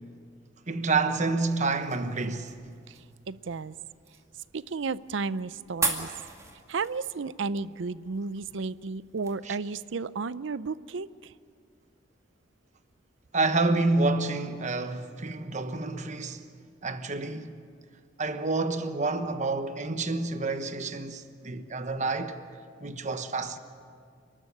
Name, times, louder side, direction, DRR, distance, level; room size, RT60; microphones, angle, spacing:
voice 1, 0.7-2.6 9.4-9.6 13.3-16.5 16.8-17.6 18.2-22.4 22.8-23.6, right 3 dB, 40° right, 1.2 m, -28 dB
sound 1, 0.9-9.3, right 4 dB, 15° right, 2.2 m, -39 dB
voice 2, 3.3-3.8 4.5-6.1 6.7-11.1, right 4 dB, 70° right, 0.6 m, -33 dB
29.5 x 13.0 x 9.8 m
head